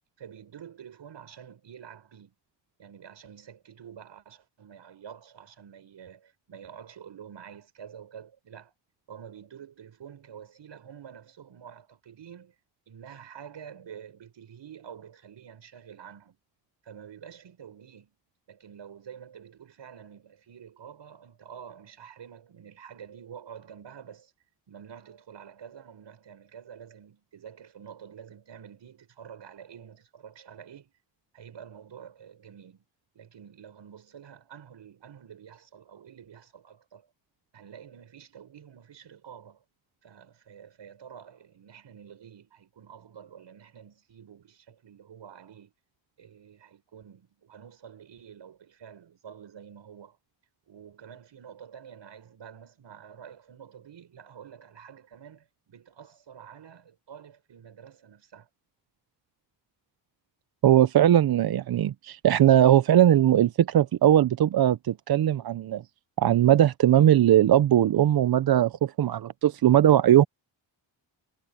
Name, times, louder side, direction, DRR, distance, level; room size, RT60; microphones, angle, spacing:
voice 1, 0.2-2.3 2.8-8.7 9.1-12.5 12.9-16.4 16.8-18.1 18.5-24.3 24.7-30.9 31.3-32.8 33.1-37.1 37.5-39.6 40.0-45.7 46.2-50.2 50.7-58.5, right 8 dB, 75° right, 6.3 m, -48 dB
voice 2, 60.6-65.8 66.2-70.2, right 11 dB, 55° right, 0.6 m, -20 dB
wide cardioid pair, 125°, 44 cm